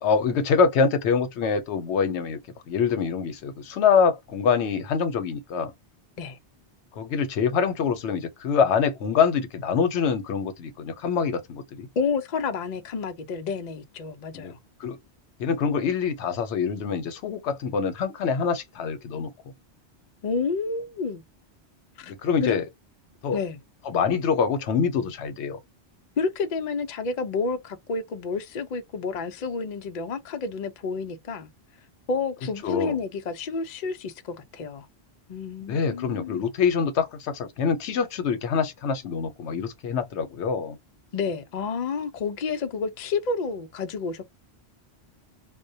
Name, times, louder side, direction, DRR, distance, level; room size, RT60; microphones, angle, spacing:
voice 1, 0.0-2.4 2.7-5.7 7.0-11.9 14.3-14.5 14.8-15.0 15.4-19.3 22.0-22.6 23.2-23.4 23.9-25.6 32.6-33.0 35.6-40.8, left 6 dB, 85° left, 0.9 m, -25 dB
voice 2, 12.0-14.6 20.2-21.2 22.0-22.1 22.4-22.6 23.3-23.6 26.2-31.5 32.1-34.9 35.3-36.4 41.1-44.3, left 4 dB, 55° left, 0.5 m, -30 dB
2.2 x 2.1 x 2.6 m
omnidirectional pair, 1.1 m